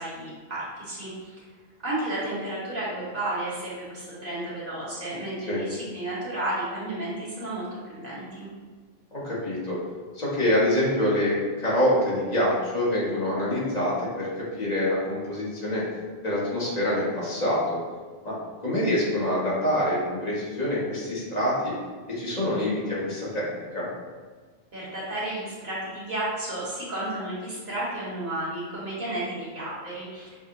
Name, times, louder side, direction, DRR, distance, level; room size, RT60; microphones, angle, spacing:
voice 1, 0.0-1.4 1.8-8.5 24.7-30.4, right 1 dB, 55° right, -7 dB, 1.4 m, -32 dB
voice 2, 9.1-9.8 10.1-15.8 16.2-17.8 18.2-18.4 18.6-21.7 22.1-23.5 23.7-23.9, left 1 dB, 40° left, -6 dB, 1.1 m, -26 dB
5.8 x 2.1 x 2.8 m, 1.4 s
omnidirectional pair, 1.1 m